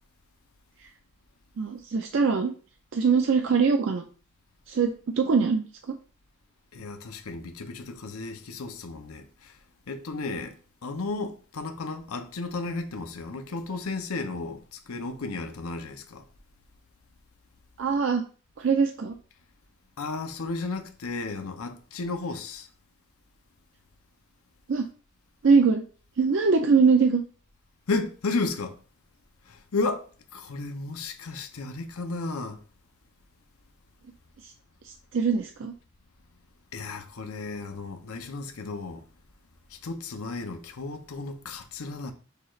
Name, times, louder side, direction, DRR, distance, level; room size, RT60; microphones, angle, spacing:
voice 1, 1.6-2.5 2.9-4.0 4.7-5.9 17.8-18.2 18.6-19.1 24.7-24.9 25.4-25.8 26.2-27.2 34.4-34.5 34.8-35.7, right 5 dB, 60° right, 0.4 m, -22 dB
voice 2, 6.7-9.5 9.9-10.5 10.8-16.2 20.0-22.7 27.9-28.8 29.5-32.6 36.7-39.0 39.7-42.1, left 3 dB, 85° left, 0.7 m, -33 dB
6.5 x 3.1 x 2.4 m
head